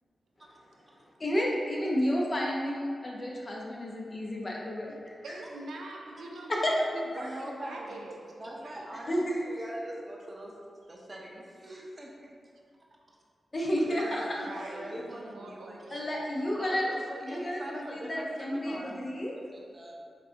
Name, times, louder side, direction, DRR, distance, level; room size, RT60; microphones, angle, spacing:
voice 1, 1.2-5.2 6.5-6.7 7.2-7.3 9.1-9.4 13.5-14.5 15.9-16.9 17.2-19.3, equal, 45° left, -2 dB, 0.7 m, -31 dB
voice 2, 5.2-8.3 8.6-8.9 13.8-16.2, right 2 dB, 90° right, 1 dB, 0.3 m, -43 dB
voice 3, 7.1-8.0 8.4-10.6 10.9-12.3 13.1-13.2 14.1-16.0 16.6-19.9, right 1 dB, 35° right, -2 dB, 0.6 m, -43 dB
4.7 x 2.5 x 2.5 m, 2.1 s
cardioid pair, 55°, 0 cm